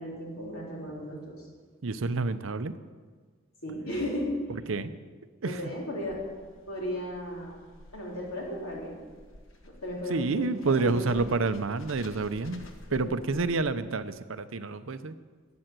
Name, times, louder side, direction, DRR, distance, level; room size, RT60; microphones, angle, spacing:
voice 1, 0.0-1.5 3.6-4.3 5.4-6.2 6.7-7.5 7.9-9.0 9.8-11.2 12.9-13.1, equal, 85° left, -3 dB, 4.0 m, -35 dB
voice 2, 1.8-2.7 4.7-4.9 5.4-5.6 10.1-12.6 12.9-15.2, right 3 dB, 65° right, 12 dB, 0.6 m, -29 dB
sound 1, 5.9-14.1, left 1 dB, 65° left, 1.4 m, -52 dB
12.5 x 7.8 x 9.0 m, 1.5 s
head